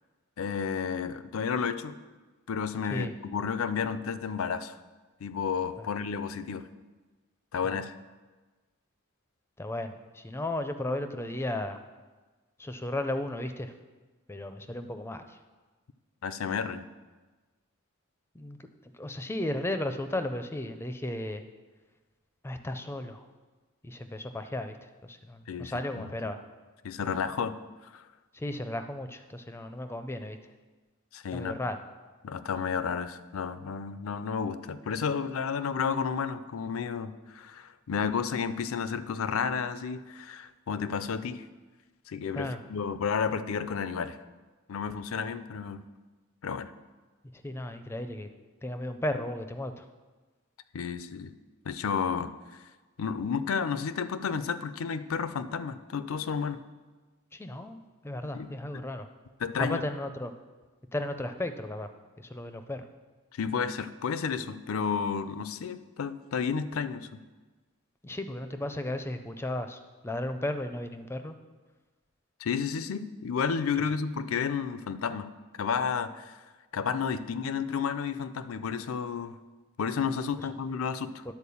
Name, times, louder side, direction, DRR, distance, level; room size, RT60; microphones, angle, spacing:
voice 1, 0.4-2.0 2.5-4.7 5.2-6.7 7.5-7.9 16.2-16.9 25.5-26.1 26.8-27.5 27.9-28.0 31.1-31.6 32.2-41.4 42.1-44.2 44.7-45.8 46.4-46.7 50.7-51.3 51.7-52.3 53.0-56.6 58.3-58.5 58.7-58.8 59.4-59.8 63.3-67.1 72.4-75.3 75.6-76.4 76.7-79.4 79.8-81.2, left 6 dB, 75° left, 13 dB, 0.4 m, -31 dB
voice 2, 9.6-11.8 12.6-13.7 14.3-15.2 18.4-18.6 19.0-21.4 22.4-23.3 23.8-24.7 25.0-26.4 28.3-30.4 31.3-31.8 42.3-42.6 47.4-48.3 48.6-49.8 57.3-57.8 58.0-59.1 59.6-60.3 60.9-61.9 62.2-62.8 68.0-69.8 70.0-71.4, left 1 dB, 10° left, 8 dB, 0.4 m, -34 dB
10.0 x 4.4 x 6.9 m, 1.3 s
head